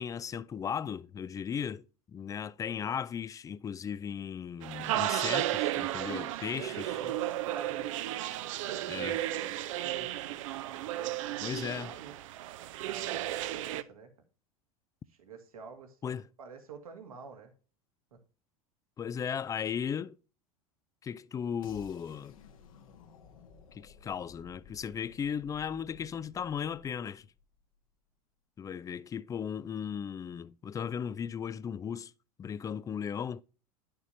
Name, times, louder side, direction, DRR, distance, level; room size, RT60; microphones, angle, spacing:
voice 1, 0.0-6.9 8.9-9.2 11.4-11.9 16.0-16.3 19.0-20.2 21.0-22.4 23.7-27.3 28.6-32.1 32.4-33.4, left 7 dB, 20° left, 0.4 m, -36 dB
sound 1, 4.6-13.8, right 14 dB, 60° right, 0.6 m, -34 dB
voice 2, 6.2-8.2 8.7-10.4 10.7-12.1 12.8-14.1 15.1-17.5, right 5 dB, 75° right, 1.8 m, -49 dB
sound 2, 21.6-27.6, left 4 dB, 70° left, 1.5 m, -55 dB
11.0 x 6.7 x 2.7 m
figure-of-eight pair, 85°, 18 cm